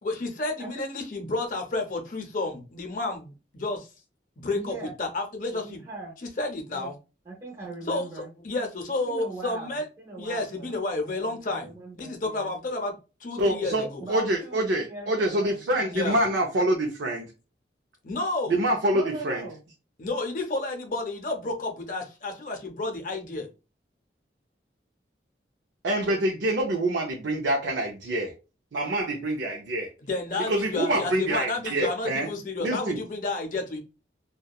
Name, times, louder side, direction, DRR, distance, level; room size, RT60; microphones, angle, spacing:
voice 1, 0.0-3.9 4.4-5.8 6.4-7.0 7.9-9.9 10.2-12.9 13.2-14.3 15.9-16.2 18.0-18.5 20.0-23.5 30.0-33.8, left 2 dB, 45° left, 3 dB, 0.6 m, -31 dB
voice 2, 0.6-0.9 4.5-4.9 5.5-6.2 6.7-6.9 7.2-8.3 9.1-12.5 14.0-16.1 18.9-19.6, right 2 dB, 25° right, -5 dB, 0.7 m, -40 dB
voice 3, 13.4-17.3 18.5-19.5 25.8-28.3 28.7-29.9 30.5-32.3 32.6-33.0, right 1 dB, 85° right, 1 dB, 0.5 m, -26 dB
2.7 x 2.2 x 2.2 m, 0.30 s
head